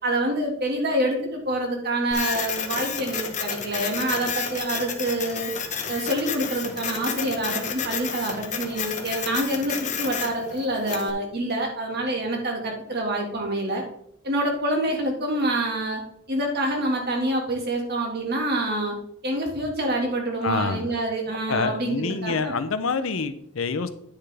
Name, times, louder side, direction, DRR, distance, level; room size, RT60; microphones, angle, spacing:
voice 1, 0.0-5.5 5.9-13.8 14.2-16.0 16.3-19.0 19.2-22.5, right 1 dB, 50° right, 1 dB, 2.1 m, -26 dB
Printer, 2.1-11.1, left 6 dB, 35° left, 1.0 m, -31 dB
voice 2, 20.4-20.9 21.5-23.9, left 4 dB, 70° left, 12 dB, 0.6 m, -26 dB
10.0 x 6.7 x 3.5 m, 0.72 s
head